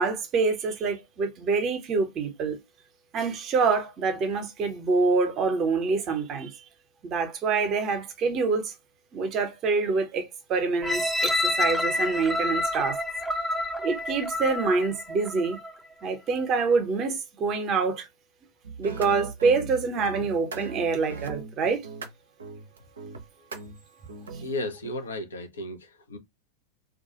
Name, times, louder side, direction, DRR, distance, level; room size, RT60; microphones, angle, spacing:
voice 1, 0.0-2.6 3.1-6.7 7.0-8.7 9.1-13.0 13.8-15.6 16.0-18.1 18.8-21.9, right 4 dB, 35° right, 0.8 m, -26 dB
sound 1, 10.8-15.8 16.3-16.4, left 2 dB, ahead, 0.6 m, -28 dB
sound 2, 18.6-24.9, right 4 dB, 70° right, 0.5 m, -39 dB
voice 2, 24.4-26.2, left 1 dB, 70° left, 0.7 m, -34 dB
2.3 x 2.3 x 2.8 m
figure-of-eight pair, 90°, 0 cm